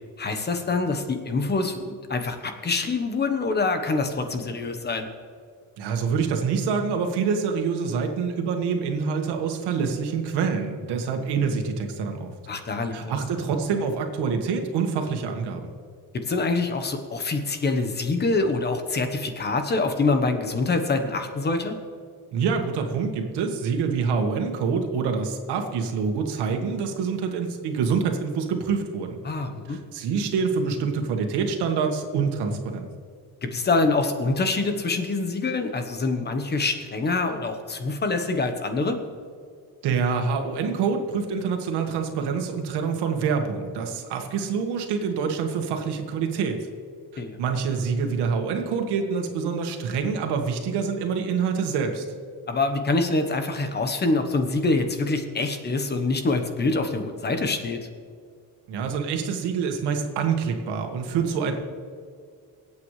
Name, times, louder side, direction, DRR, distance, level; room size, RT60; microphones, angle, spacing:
voice 1, 0.2-5.1 12.5-13.2 16.3-21.7 29.2-29.8 33.4-39.0 47.2-47.4 52.5-57.8, left 3 dB, 25° left, 7 dB, 1.1 m, -25 dB
voice 2, 5.8-12.3 12.9-15.7 22.3-29.2 29.7-32.9 39.8-46.7 47.1-52.0 58.7-61.5, right 5 dB, 85° right, 4 dB, 1.8 m, -26 dB
24.5 x 8.5 x 3.3 m, 2.1 s
cardioid pair, 150°, 39 cm